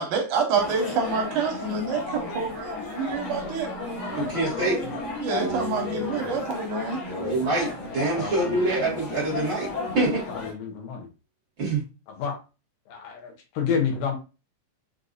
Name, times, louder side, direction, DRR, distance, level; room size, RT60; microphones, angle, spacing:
voice 1, 0.0-3.7 5.2-7.0, right 4 dB, 75° right, 2.3 m, -27 dB
sound 1, 0.5-10.5, left 3 dB, 60° left, 1.5 m, -34 dB
sound 2, 3.2-8.1, right 8 dB, 90° right, 1.4 m, -40 dB
voice 2, 4.1-4.8 7.1-9.7 9.9-10.2 11.6-11.8, right 2 dB, 45° right, 2.0 m, -25 dB
voice 3, 8.2-8.7 10.3-11.1 12.1-12.4 12.9-14.2, left 6 dB, 85° left, 2.6 m, -29 dB
6.3 x 2.6 x 2.4 m
omnidirectional pair, 3.7 m